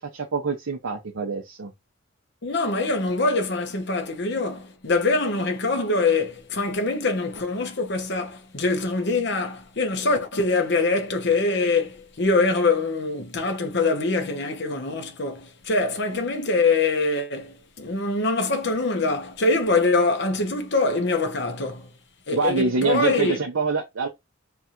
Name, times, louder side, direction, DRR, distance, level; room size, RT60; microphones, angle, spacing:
voice 1, 0.1-1.7 22.3-24.1, right 4 dB, 80° right, 0.7 m, -25 dB
voice 2, 2.4-21.9 22.3-23.4, left 3 dB, 55° left, 1.0 m, -24 dB
3.4 x 2.5 x 4.3 m
head